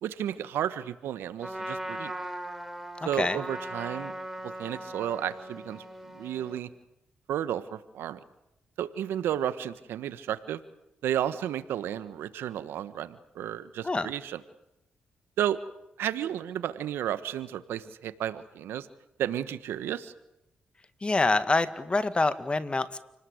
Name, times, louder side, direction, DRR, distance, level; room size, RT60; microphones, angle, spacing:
voice 1, 0.0-2.1 3.0-4.1 4.4-5.8 6.1-6.7 7.3-8.2 8.8-10.6 11.0-14.4 15.4-15.6 16.0-18.9 19.2-20.1, right 10 dB, 90° right, 13 dB, 1.4 m, -32 dB
Trumpet, 1.4-6.6, right 1 dB, 5° right, 5.0 m, -39 dB
voice 2, 21.0-23.0, left 3 dB, 30° left, 12 dB, 2.0 m, -26 dB
29.0 x 19.5 x 8.2 m, 0.85 s
cardioid pair, 65°, 4 cm